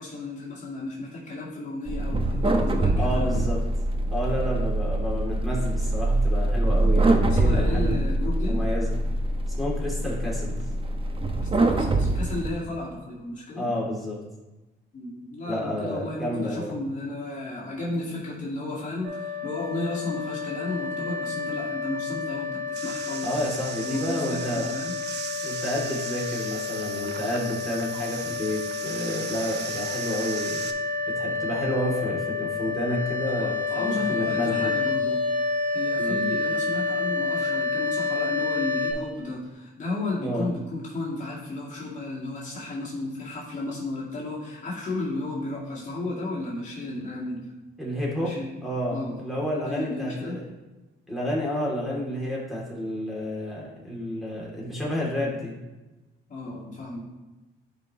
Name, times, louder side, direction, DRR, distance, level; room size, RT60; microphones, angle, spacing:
voice 1, 0.0-3.4 7.3-8.7 11.4-13.7 14.9-23.3 23.8-24.9 33.3-35.3 35.7-47.5 48.2-48.5 48.9-49.2 49.6-50.4 56.3-57.1, left 2 dB, 40° left, -6 dB, 2.2 m, -33 dB
sound 1, 1.9-12.5, right 1 dB, 25° right, 0.9 m, -24 dB
voice 2, 3.0-3.6 4.1-8.0 8.5-9.0 9.6-10.7 13.5-14.2 15.5-16.7 23.2-24.7 25.4-30.6 31.1-34.7 36.0-36.2 40.2-40.4 47.8-48.3 48.6-50.4 51.1-55.5, equal, ahead, -6 dB, 2.9 m, -30 dB
sound 2, 19.0-38.9, left 4 dB, 80° right, 2.6 m, -29 dB
sound 3, 22.8-30.7, right 7 dB, 60° right, 0.8 m, -38 dB
11.0 x 5.3 x 3.1 m, 1.1 s
cardioid pair, 90°, 20 cm